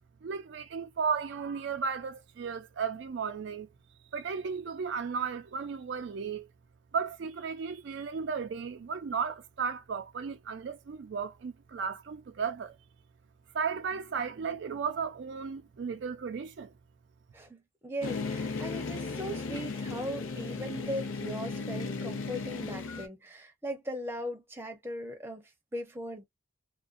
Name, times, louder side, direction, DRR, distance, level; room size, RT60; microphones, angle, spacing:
voice 1, 0.2-3.7 4.1-6.5 6.9-12.7 13.5-16.7, right 6 dB, 60° right, 0.4 m, -34 dB
voice 2, 17.3-26.2, equal, 10° right, 0.7 m, -39 dB
sound 1, 18.0-23.1, left 4 dB, 85° left, 0.6 m, -36 dB
2.5 x 2.1 x 2.5 m
head